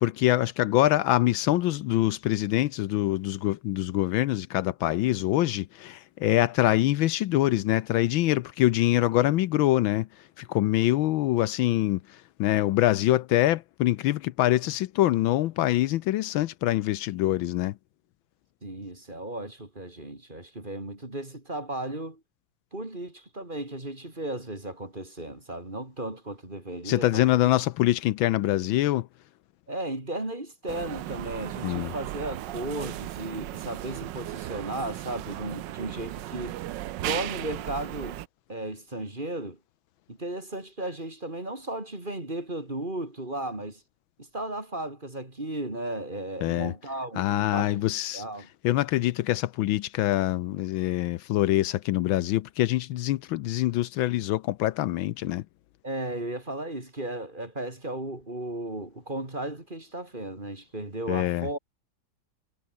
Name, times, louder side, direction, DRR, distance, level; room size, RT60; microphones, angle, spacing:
voice 1, 0.0-17.8 26.8-29.1 31.6-31.9 46.4-46.7 47.2-48.2 48.6-55.4 61.1-61.5, left 15 dB, 80° left, 1.4 m, -25 dB
voice 2, 18.6-22.2 22.7-27.3 29.7-36.6 37.0-38.2 38.5-39.6 40.1-43.8 44.2-47.8 48.1-48.5 55.8-61.6, right 1 dB, 25° right, 4.3 m, -35 dB
sound 1, 30.7-38.3, right 14 dB, 70° right, 1.3 m, -36 dB
omnidirectional pair, 2.2 m